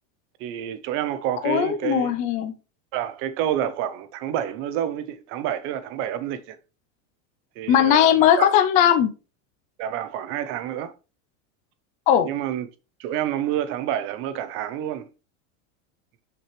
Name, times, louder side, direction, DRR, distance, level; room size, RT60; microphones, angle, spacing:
voice 1, 0.4-2.1 2.9-6.6 7.6-8.5 9.8-10.9 12.2-12.7 13.0-15.1, right 10 dB, 35° right, 0.7 m, -28 dB
voice 2, 1.4-2.5 7.7-9.1 12.1-12.3, left 10 dB, 20° left, 0.4 m, -18 dB
6.2 x 5.9 x 3.2 m
supercardioid pair, 170°, 38 cm